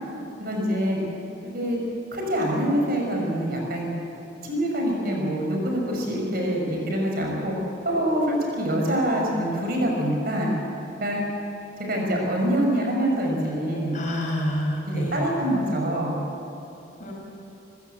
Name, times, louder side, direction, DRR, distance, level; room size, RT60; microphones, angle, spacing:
voice 1, 0.4-1.0 1.5-1.8 2.1-3.9 4.4-7.5 7.8-10.5 11.0-11.2 11.8-14.0 14.9-16.2, equal, 50° right, 0 dB, 5.6 m, -25 dB
voice 2, 13.9-15.2 17.0-17.1, equal, 40° left, -1 dB, 5.9 m, -27 dB
28.0 x 15.5 x 8.3 m, 2.8 s
head